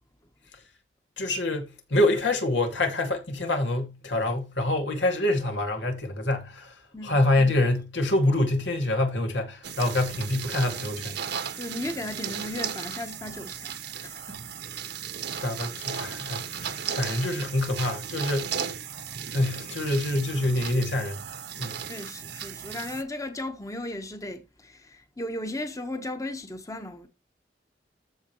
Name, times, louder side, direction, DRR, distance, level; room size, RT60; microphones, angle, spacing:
voice 1, 1.2-6.7 7.0-11.1 15.4-18.5 19.3-21.2 21.6-21.8, left 1 dB, 75° left, 2.5 m, -26 dB
sound 1, 9.6-23.0, right 7 dB, 65° right, 1.4 m, -36 dB
voice 2, 11.6-13.7 14.0-14.4 15.4-15.5 21.9-27.1, left 1 dB, 20° left, 1.3 m, -36 dB
14.5 x 5.1 x 3.1 m
head